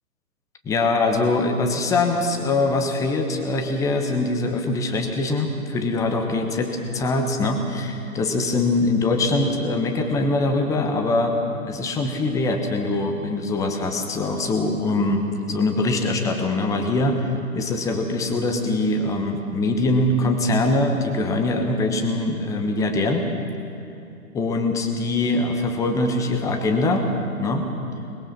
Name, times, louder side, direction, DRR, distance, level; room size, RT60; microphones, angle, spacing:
voice 1, 0.6-11.4 11.6-23.3 24.3-27.0 27.4-27.7, left 2 dB, 5° left, 5 dB, 1.0 m, -23 dB
21.5 x 21.0 x 5.8 m, 2.6 s
figure-of-eight pair, 135°, 45 cm